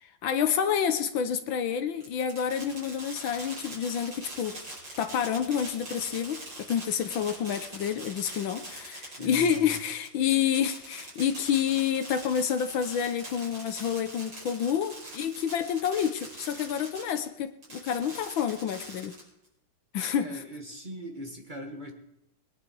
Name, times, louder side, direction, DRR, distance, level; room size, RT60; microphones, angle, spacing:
voice 1, 0.0-4.6 5.0-19.1 19.9-20.4, left 8 dB, 70° left, 10 dB, 1.6 m, -29 dB
Fireworks, 2.0-17.2 17.6-19.5, right 1 dB, 55° right, 7.3 m, -43 dB
voice 2, 9.2-9.6 20.2-21.9, equal, 25° right, 2 dB, 1.8 m, -40 dB
21.5 x 10.5 x 4.6 m, 0.81 s
omnidirectional pair, 2.3 m